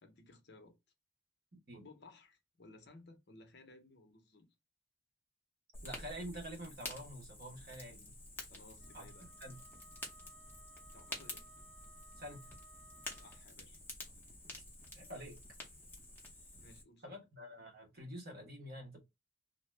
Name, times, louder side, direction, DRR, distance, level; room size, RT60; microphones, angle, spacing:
voice 1, 0.0-0.8 1.8-4.5 8.5-9.3 10.9-11.5 13.1-13.8 14.1-14.2 16.6-17.2, left 2 dB, 55° left, 0.7 m, -59 dB
Fire, 5.7-16.8, left 2 dB, 10° left, 0.8 m, -50 dB
voice 2, 5.8-8.1 8.9-9.6 12.2-12.4 14.9-15.4 17.0-19.0, equal, 50° right, 1.1 m, -47 dB
Wind instrument woodwind instrument, 8.8-13.5, right 3 dB, 90° right, 0.8 m, -62 dB
2.8 x 2.2 x 3.1 m
head